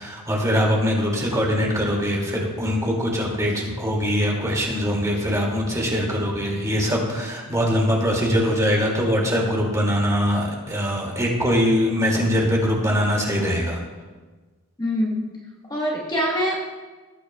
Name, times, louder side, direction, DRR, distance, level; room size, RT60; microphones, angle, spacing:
voice 1, 0.0-13.8, equal, 15° right, -2 dB, 2.1 m, -22 dB
voice 2, 14.8-15.3 15.7-16.6, equal, 20° left, -3 dB, 1.1 m, -24 dB
18.0 x 8.7 x 2.2 m, 1.3 s
head